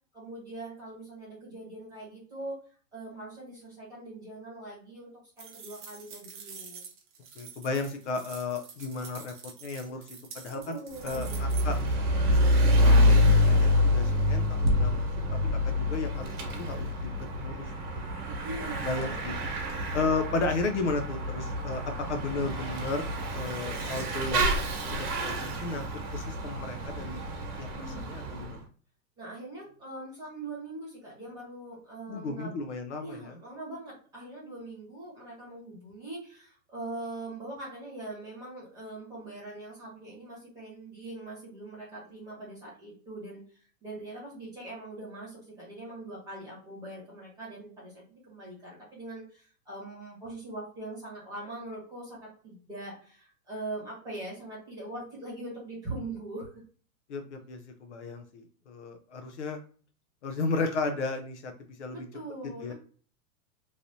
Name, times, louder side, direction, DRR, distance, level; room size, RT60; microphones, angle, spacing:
voice 1, 0.1-2.6 2.9-6.8 10.5-11.5 18.2-19.2 27.6-28.1 29.2-32.5 33.0-43.4 43.8-56.5 61.9-62.7, right 2 dB, 10° right, -7 dB, 1.1 m, -42 dB
sound 1, 5.4-11.9, right 6 dB, 35° right, 0.5 m, -47 dB
voice 2, 7.4-9.3 9.6-10.0 10.3-11.8 12.3-15.1 15.6-17.1 17.4-17.6 18.8-19.4 19.9-24.6 24.9-25.9 26.1-27.2 27.6-28.6 32.1-33.4 57.1-59.6 60.2-61.5 61.8-62.0 62.6-62.7, left 3 dB, 50° left, 6 dB, 0.5 m, -34 dB
Bicycle / Mechanisms, 11.0-28.6, left 1 dB, 80° right, 1.1 m, -27 dB
3.1 x 2.6 x 2.6 m, 0.43 s
supercardioid pair, 170°, 45 cm